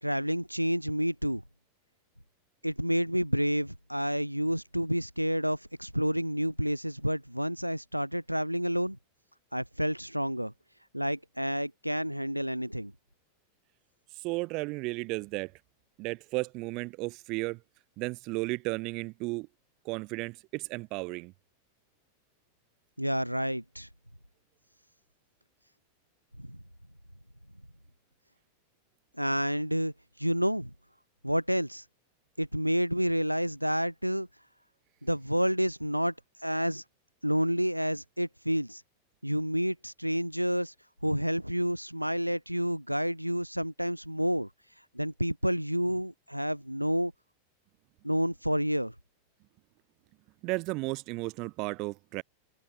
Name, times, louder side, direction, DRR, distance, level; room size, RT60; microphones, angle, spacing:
voice 1, 0.0-1.4 2.6-9.0 9.5-10.5 10.9-12.9 23.0-23.9 26.4-26.6 29.2-30.7 31.2-31.8 32.4-34.3 35.0-36.1 36.4-36.8 37.2-38.8 39.2-40.7 41.0-44.5 44.9-47.1 48.0-48.9, equal, 90° right, 3.3 m, -29 dB
voice 2, 14.2-15.5 16.0-17.6 18.0-19.5 19.8-21.3 50.4-52.2, right 24 dB, 40° right, 7.7 m, -34 dB
figure-of-eight pair, 90°, 0 cm